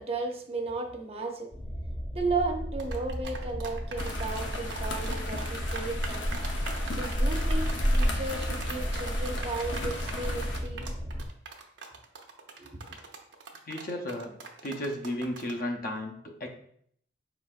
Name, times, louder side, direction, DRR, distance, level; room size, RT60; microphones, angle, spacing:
voice 1, 0.0-1.5 2.1-6.3 6.9-10.9 12.6-12.8, right 3 dB, 35° right, 3 dB, 0.6 m, -34 dB
sound 1, 1.5-11.3, equal, 5° left, 0.7 m, -36 dB
sound 2, 2.8-15.6, right 4 dB, 80° right, 0.7 m, -42 dB
sound 3, 4.0-10.6, equal, 90° left, 0.8 m, -31 dB
voice 2, 13.7-14.4 14.6-16.5, left 1 dB, 50° left, 3 dB, 0.7 m, -34 dB
5.3 x 3.9 x 2.5 m, 0.64 s
head